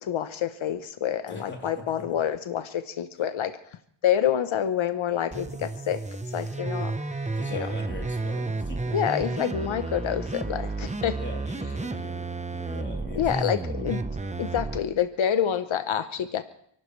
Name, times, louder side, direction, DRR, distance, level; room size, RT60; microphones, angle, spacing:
voice 1, 0.0-3.5 4.0-6.0 6.3-6.9 7.5-7.7 8.9-11.1 13.1-14.0 14.4-16.4, left 9 dB, 80° left, 9 dB, 0.9 m, -27 dB
voice 2, 1.3-2.1 7.2-9.0 11.1-14.0, left 1 dB, 25° left, 0 dB, 3.1 m, -42 dB
sound 1, 5.3-14.8, right 3 dB, 15° right, 0.9 m, -32 dB
Bowed string instrument, 6.3-12.5, right 1 dB, ahead, 6.8 m, -53 dB
29.0 x 12.0 x 3.2 m, 0.68 s
wide cardioid pair, 90°, 47 cm